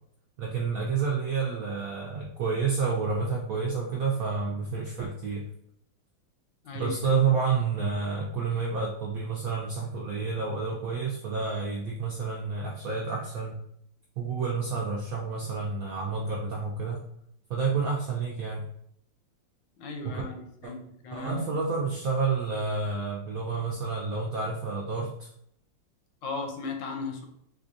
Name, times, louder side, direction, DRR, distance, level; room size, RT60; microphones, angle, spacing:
voice 1, 0.4-5.4 6.7-13.6 14.2-17.0 17.5-18.6 20.0-20.2 20.6-20.7 21.1-25.3, right 5 dB, 80° right, -2 dB, 0.7 m, -29 dB
voice 2, 6.6-7.1 19.8-21.5 26.2-27.3, left 4 dB, 90° left, 3 dB, 1.4 m, -37 dB
4.2 x 2.4 x 2.5 m, 0.71 s
omnidirectional pair, 2.0 m